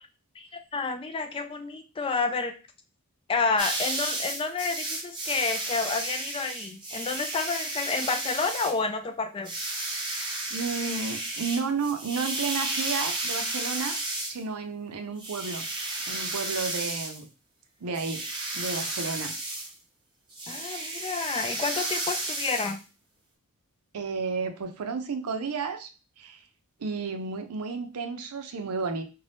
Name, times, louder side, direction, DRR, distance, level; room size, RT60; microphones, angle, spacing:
voice 1, 0.4-2.5 3.3-9.5 20.5-22.8, left 4 dB, 25° left, 6 dB, 0.3 m, -30 dB
sound 1, 3.6-8.8 9.4-14.4 15.2-17.2 17.9-19.7 20.3-22.8, right 2 dB, 20° right, 0.7 m, -33 dB
voice 2, 10.5-14.0 14.2-15.6 16.1-17.3 17.8-18.2 18.5-19.3 23.9-25.9 26.2-26.4 26.8-29.0, right 4 dB, 80° right, 6 dB, 0.5 m, -32 dB
2.6 x 2.2 x 3.3 m, 0.32 s
head